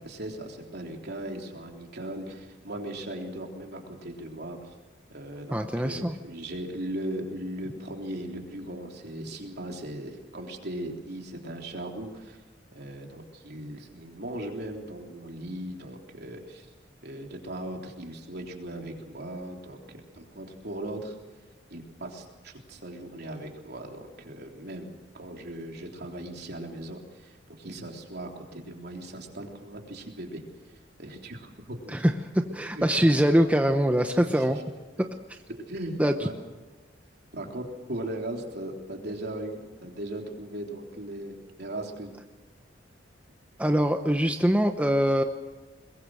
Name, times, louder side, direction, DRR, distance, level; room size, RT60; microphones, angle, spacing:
voice 1, 0.0-4.7 5.1-12.4 12.7-16.7 17.0-21.2 21.7-30.4 31.0-32.0 32.7-32.9 34.1-34.5 35.5-36.3 37.3-42.1, right 1 dB, 60° right, 2 dB, 3.5 m, -38 dB
voice 2, 5.5-6.2 31.9-34.6 36.0-36.3 43.6-45.2, equal, 10° right, 5 dB, 0.9 m, -23 dB
22.5 x 22.0 x 6.4 m, 1.3 s
head